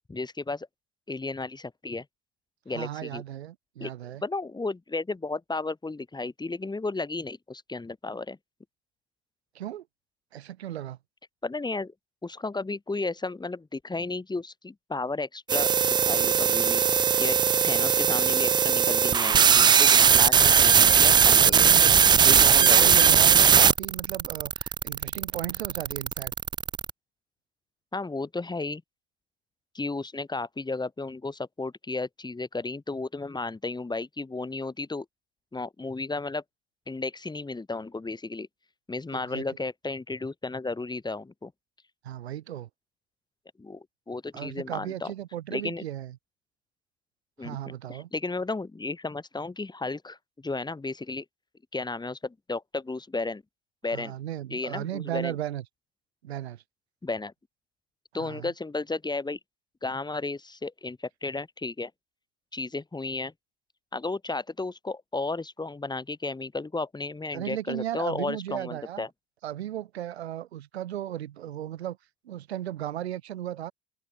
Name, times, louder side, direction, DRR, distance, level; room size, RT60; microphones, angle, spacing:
voice 1, 0.1-0.7 1.1-2.1 2.7-3.2 3.8-3.9 4.2-8.4 11.4-11.9 12.2-15.7 16.0-17.4 17.6-21.7 22.2-22.9 27.9-28.8 29.7-35.1 35.5-36.4 36.9-38.5 38.9-41.5 43.6-45.1 45.5-45.8 47.4-51.2 51.7-53.4 53.8-54.1 54.5-55.3 57.0-57.3 58.1-59.4 59.8-61.9 62.5-63.3 63.9-69.1, left 3 dB, 15° left, 7.3 m, -33 dB
voice 2, 2.7-4.2 9.5-9.8 10.3-11.0 21.4-26.3 39.1-39.4 42.0-42.7 44.3-46.2 47.4-48.1 53.9-55.6 56.2-56.6 58.1-58.5 67.3-69.1 69.4-72.0 72.2-73.7, right 12 dB, 75° right, 2.3 m, -36 dB
sound 1, 15.5-26.9, right 7 dB, 15° right, 0.4 m, -19 dB
open air
figure-of-eight pair, 75°, 33 cm